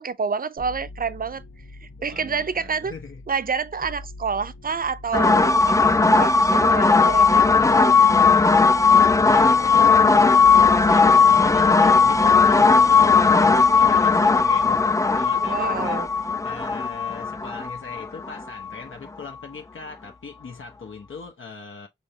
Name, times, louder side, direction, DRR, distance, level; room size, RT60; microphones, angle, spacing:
voice 1, 0.0-1.4 1.8-2.9 3.3-5.9 6.2-7.7 15.4-16.1, right 5 dB, 45° right, 0.4 m, -28 dB
sound 1, 0.6-18.0 18.3-19.1, left 2 dB, 45° left, 1.1 m, -44 dB
voice 2, 2.0-3.2 9.1-21.9, left 4 dB, 90° left, 1.0 m, -41 dB
sound 2, 5.1-18.7, left 4 dB, 15° left, 0.3 m, -17 dB
5.3 x 3.1 x 2.7 m
cardioid pair, 50°, 20 cm